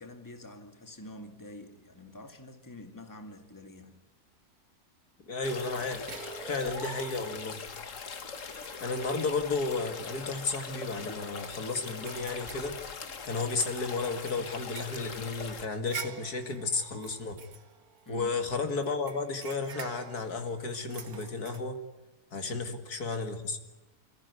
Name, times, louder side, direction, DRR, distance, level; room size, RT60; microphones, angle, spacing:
voice 1, 0.0-4.0 18.1-18.3 22.5-22.8, left 1 dB, 10° left, 2.1 m, -47 dB
voice 2, 5.3-6.0 6.5-7.6 8.8-12.8 13.2-17.4 18.1-21.8 22.3-23.6, left 4 dB, 75° left, 2.7 m, -33 dB
sound 1, 5.4-15.7, left 5 dB, 55° left, 1.7 m, -42 dB
sound 2, 6.1-7.6 8.1-8.2 8.5-9.4 9.9-10.1 10.5-10.6 11.0-13.4 13.9-18.4 18.8-21.6, right 7 dB, 70° right, 1.9 m, -46 dB
27.5 x 15.0 x 9.5 m
omnidirectional pair, 1.6 m